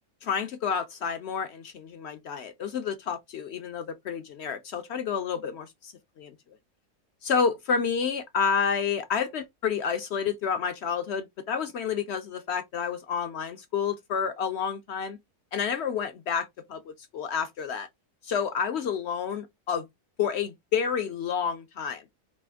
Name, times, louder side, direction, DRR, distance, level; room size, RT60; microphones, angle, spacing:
voice 1, 0.2-6.3 7.2-15.2 15.5-17.9 18.2-19.8 20.2-22.0, left 6 dB, 65° left, 0.6 m, -29 dB
4.3 x 3.0 x 3.4 m
omnidirectional pair, 1.7 m